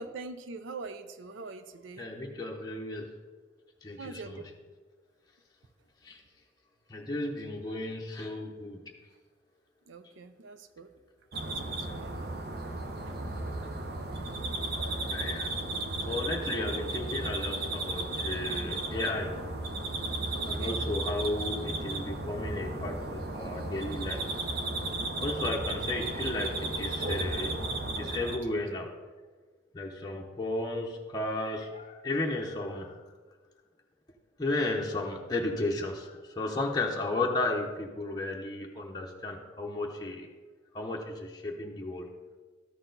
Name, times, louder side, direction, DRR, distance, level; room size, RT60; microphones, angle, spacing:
voice 1, 0.0-2.1 4.0-4.4 9.9-10.9 11.4-12.2 13.1-13.2 20.3-20.8 25.2-25.6, right 3 dB, 85° right, 10 dB, 0.5 m, -44 dB
voice 2, 2.0-3.1 3.8-4.4 6.0-6.2 6.9-8.9 12.2-12.3 15.1-15.5 16.1-19.3 20.5-24.4 25.2-27.5 27.8-28.9 29.7-33.0 34.4-40.3 40.7-42.1, left 2 dB, 20° left, -1 dB, 0.7 m, -34 dB
sound 1, 11.3-28.4, right 2 dB, 55° right, 0.8 m, -34 dB
13.0 x 4.4 x 3.9 m, 1.4 s
head